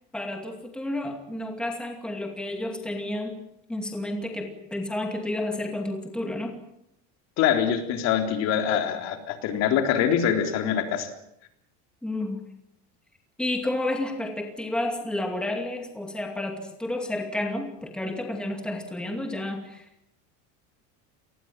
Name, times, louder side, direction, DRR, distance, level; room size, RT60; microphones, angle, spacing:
voice 1, 0.1-3.4 3.7-6.6 12.0-12.4 13.4-20.1, left 1 dB, 5° left, 3 dB, 2.4 m, -31 dB
voice 2, 7.4-11.1, left 8 dB, 50° left, 6 dB, 3.7 m, -24 dB
28.5 x 20.5 x 7.5 m, 0.78 s
cardioid pair, 170°, 34 cm